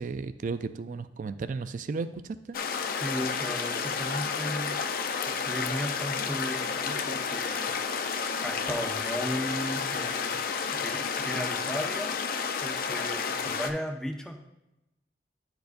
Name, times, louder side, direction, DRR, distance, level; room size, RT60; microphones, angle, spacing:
voice 1, 0.0-2.6, right 4 dB, 45° right, 12 dB, 0.3 m, -34 dB
sound 1, 2.5-13.7, left 5 dB, 55° left, 0.5 m, -31 dB
voice 2, 3.0-4.8 5.3-7.7 8.4-10.4 10.7-12.4 12.6-14.5, equal, 5° left, 3 dB, 0.6 m, -35 dB
10.5 x 4.6 x 2.5 m, 0.94 s
head